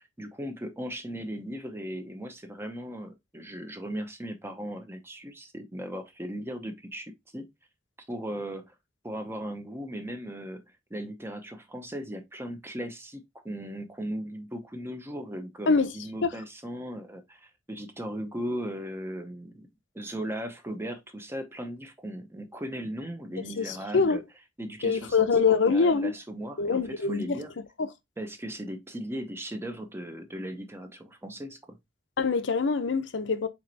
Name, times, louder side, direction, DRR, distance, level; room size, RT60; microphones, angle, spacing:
voice 1, 0.0-7.5 8.1-8.7 9.0-10.6 10.9-19.7 19.9-24.2 24.6-27.5 28.2-31.8, equal, 15° right, 0.7 m, -37 dB
voice 2, 23.6-24.2 24.8-26.1 26.6-27.4 27.8-27.9 32.2-33.5, left 4 dB, 85° left, 0.6 m, -24 dB
4.6 x 4.3 x 2.6 m
head